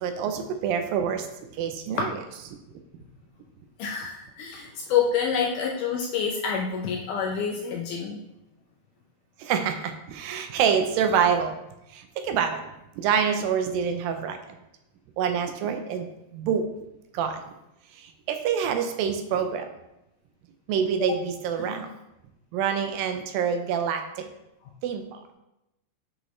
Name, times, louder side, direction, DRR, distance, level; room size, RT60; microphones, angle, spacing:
voice 1, 0.0-1.3 1.5-2.1 9.4-11.6 11.9-12.6 13.0-14.4 15.2-16.7 17.1-17.5 17.9-19.7 20.7-21.9 22.5-24.3 24.8-25.2, right 7 dB, 80° right, 7 dB, 2.3 m, -26 dB
voice 2, 3.8-8.2 21.1-21.2, left 6 dB, 80° left, 0 dB, 1.9 m, -27 dB
7.8 x 6.2 x 3.1 m, 0.91 s
omnidirectional pair, 4.3 m